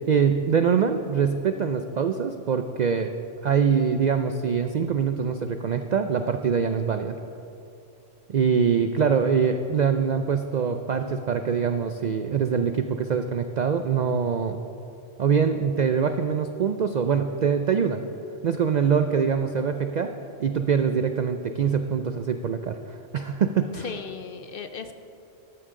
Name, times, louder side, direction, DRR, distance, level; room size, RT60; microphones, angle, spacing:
voice 1, 0.1-3.1 3.4-7.2 8.3-14.6 15.2-18.0 18.4-20.1 20.4-23.9, right 6 dB, 80° right, 7 dB, 0.4 m, -24 dB
voice 2, 23.7-24.9, left 5 dB, 60° left, 8 dB, 0.6 m, -36 dB
13.5 x 12.5 x 3.7 m, 2.8 s
omnidirectional pair, 1.3 m